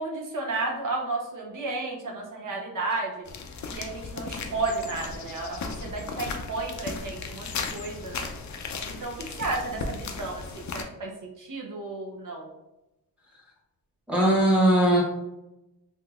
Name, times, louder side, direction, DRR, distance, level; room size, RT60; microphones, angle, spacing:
voice 1, 0.0-3.3 3.7-8.3 8.9-9.1 9.4-12.5, right 3 dB, 55° right, -1 dB, 0.8 m, -33 dB
sound 1, 3.3-10.8, left 4 dB, 50° left, 0.5 m, -36 dB
voice 2, 14.1-15.0, right 1 dB, 5° right, -2 dB, 1.1 m, -19 dB
3.5 x 2.8 x 2.4 m, 0.93 s
cardioid pair, 70°, 38 cm